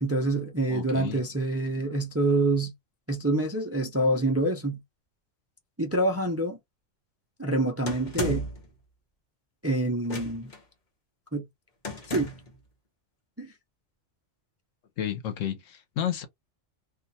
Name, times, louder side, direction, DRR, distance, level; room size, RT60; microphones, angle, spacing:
voice 1, 0.0-2.7 3.1-4.8 5.8-6.6 7.4-8.5 9.6-10.5 11.3-11.4 12.1-12.3 13.4-13.5, right 2 dB, 20° right, 0.4 m, -26 dB
voice 2, 0.7-1.2 15.0-16.3, left 10 dB, 75° left, 1.1 m, -31 dB
sound 1, 7.9-8.7 10.0-10.6 11.8-12.5, left 1 dB, 40° left, 1.0 m, -33 dB
2.6 x 2.4 x 4.0 m
omnidirectional pair, 1.3 m